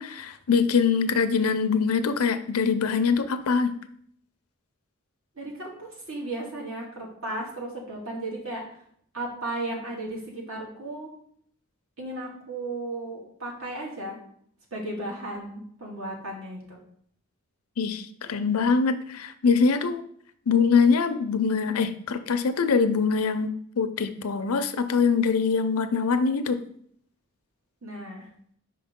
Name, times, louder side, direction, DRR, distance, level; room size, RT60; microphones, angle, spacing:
voice 1, 0.0-3.7 17.8-20.0 20.5-26.6, left 5 dB, 90° left, 10 dB, 0.6 m, -23 dB
voice 2, 5.4-8.6 9.1-11.1 12.0-14.2 14.7-16.8 27.8-28.3, right 2 dB, 75° right, -2 dB, 2.0 m, -35 dB
5.7 x 4.6 x 3.6 m, 0.64 s
head